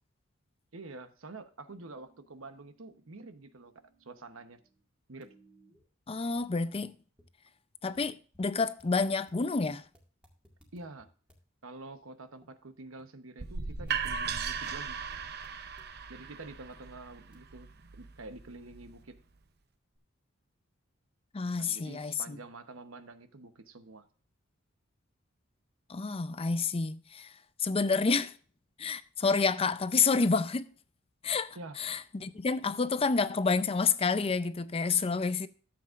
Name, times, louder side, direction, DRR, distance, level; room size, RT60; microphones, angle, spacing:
voice 1, 0.7-3.7 4.0-4.6 5.1-5.3 10.7-11.1 11.6-15.0 16.1-19.1 21.6-24.1 27.8-28.1 31.5-31.8, right 2 dB, 90° right, 1.0 m, -47 dB
sound 1, 1.7-4.8 5.2-5.8 6.4-6.5 7.2-7.3 7.9-8.1 8.3-8.5 8.8-11.4 12.4-12.5 13.0-13.1 13.4-14.0 14.2-15.9 16.3-16.4 16.7-16.8 17.3-17.4, right 1 dB, 5° right, 2.0 m, -64 dB
voice 2, 6.1-6.9 7.8-9.8 21.3-22.4 25.9-27.3 27.6-28.4 28.8-30.7 31.2-35.5, left 4 dB, 30° left, 0.5 m, -29 dB
sound 2, 13.4-19.2, right 6 dB, 55° right, 0.8 m, -38 dB
13.0 x 7.7 x 2.5 m
head